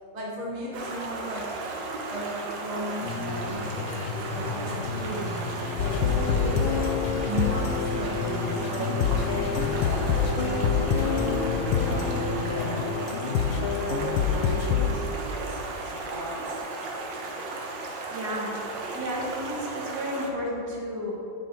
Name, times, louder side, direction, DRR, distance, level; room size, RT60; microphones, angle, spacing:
voice 1, 0.1-1.5 1.9-5.3 5.9-6.7 7.2-12.8 13.5-16.6, right 1 dB, 25° right, -4 dB, 1.1 m, -36 dB
Stream, 0.7-20.3, right 2 dB, 75° right, 1.6 m, -36 dB
sound 1, 3.0-12.9, left 4 dB, 70° left, 0.7 m, -34 dB
sound 2, 5.8-14.9, left 6 dB, 90° left, 1.3 m, -26 dB
voice 2, 17.2-17.6 18.1-21.1, equal, 60° right, -3 dB, 1.8 m, -33 dB
9.4 x 5.5 x 4.5 m, 2.7 s
omnidirectional pair, 2.0 m